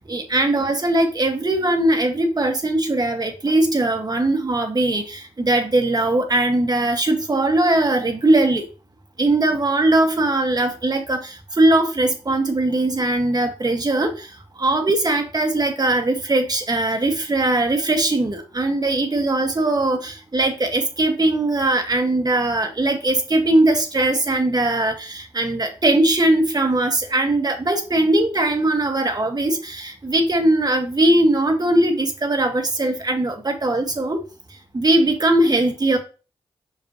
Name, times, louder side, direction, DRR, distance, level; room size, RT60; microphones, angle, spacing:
voice 1, 0.1-8.7 9.2-34.2 34.7-36.0, right 2 dB, 35° right, 4 dB, 1.8 m, -20 dB
5.9 x 5.4 x 3.1 m, 0.34 s
supercardioid pair, 40°, 11 cm